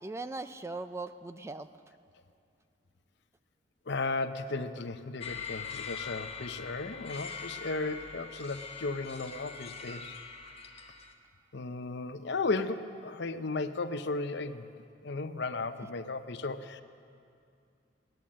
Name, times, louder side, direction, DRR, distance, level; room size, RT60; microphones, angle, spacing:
voice 1, 0.0-1.7, right 3 dB, 15° right, 11 dB, 0.3 m, -39 dB
voice 2, 3.9-10.2 11.5-14.7 15.0-16.8, left 3 dB, 60° left, 9 dB, 0.7 m, -35 dB
sound 1, 5.2-11.1, left 5 dB, 30° left, 1.1 m, -42 dB
17.0 x 10.5 x 7.4 m, 2.5 s
head